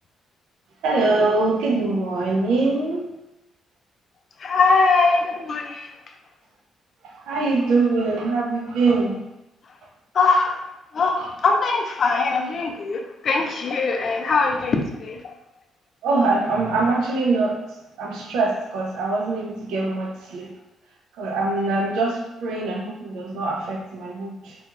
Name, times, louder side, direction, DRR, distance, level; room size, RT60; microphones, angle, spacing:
voice 1, 0.8-3.1 7.0-9.2 11.2-11.3 13.4-13.5 16.0-17.6 18.0-20.5 21.1-24.6, right 3 dB, 85° right, 0 dB, 0.5 m, -23 dB
voice 2, 4.4-5.9 10.1-10.6 10.9-15.2, left 4 dB, 55° left, 3 dB, 0.4 m, -21 dB
2.3 x 2.3 x 2.9 m, 0.85 s
cardioid pair, 90°, 0 cm